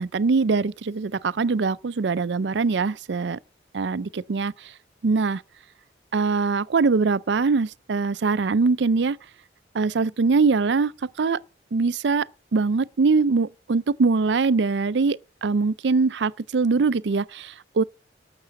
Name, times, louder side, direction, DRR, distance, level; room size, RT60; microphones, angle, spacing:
voice 1, 0.0-3.4 3.7-4.7 5.0-5.4 6.1-9.2 9.7-10.9 11.2-11.4 11.7-12.3 12.5-17.8, right 4 dB, 80° right, 0.5 m, -22 dB
12.0 x 6.8 x 7.5 m
head